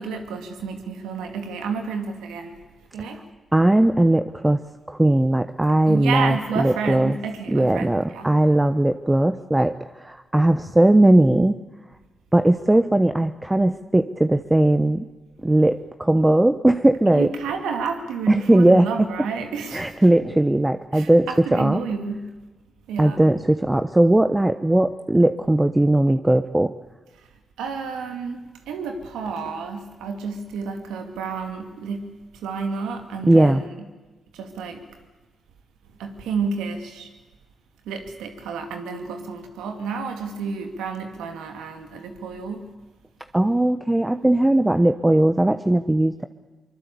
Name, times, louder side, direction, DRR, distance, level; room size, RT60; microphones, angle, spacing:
voice 1, 0.0-2.6 2.9-3.2 5.9-8.3 17.1-19.9 20.9-22.3 22.9-23.2 27.6-33.7 34.3-34.8 36.0-37.1 37.9-42.7, right 5 dB, 85° right, 5 dB, 2.4 m, -30 dB
voice 2, 3.5-4.6 4.9-7.2 7.5-11.6 12.3-15.0 15.4-17.3 18.3-18.9 19.7-21.8 23.0-26.7 33.2-33.6 43.3-46.2, right 1 dB, 15° right, 10 dB, 1.0 m, -18 dB
23.5 x 21.5 x 8.3 m, 1.2 s
supercardioid pair, 50°, 0 cm